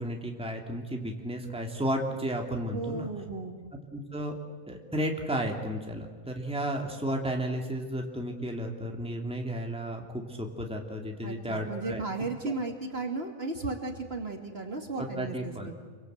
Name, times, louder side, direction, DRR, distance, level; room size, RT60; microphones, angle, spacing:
voice 1, 0.0-3.1 3.9-4.3 4.7-12.0 12.4-12.5 15.0-15.7, equal, 5° right, 2 dB, 2.4 m, -33 dB
voice 2, 2.7-3.6 11.2-15.7, right 3 dB, 45° right, 4 dB, 2.5 m, -35 dB
27.5 x 23.5 x 8.0 m, 1.5 s
omnidirectional pair, 1.5 m